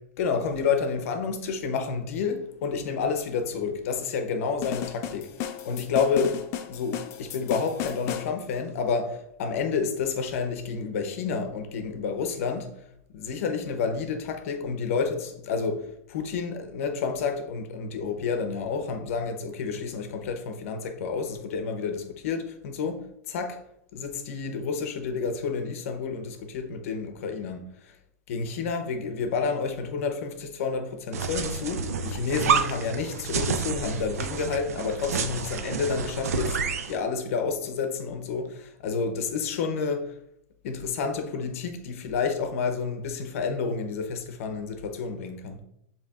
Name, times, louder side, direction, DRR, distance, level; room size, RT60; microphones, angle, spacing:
voice 1, 0.2-5.3 5.6-6.4 6.7-12.7 13.1-23.6 23.9-27.9 28.3-36.6 36.9-40.1 40.6-45.6, left 5 dB, 65° left, 0.8 m, -30 dB
sound 1, 4.6-8.3, left 10 dB, 35° left, 0.4 m, -34 dB
sound 2, 31.1-37.0, right 6 dB, 90° right, 0.5 m, -29 dB
6.8 x 2.9 x 2.4 m
supercardioid pair, 140°, 8 cm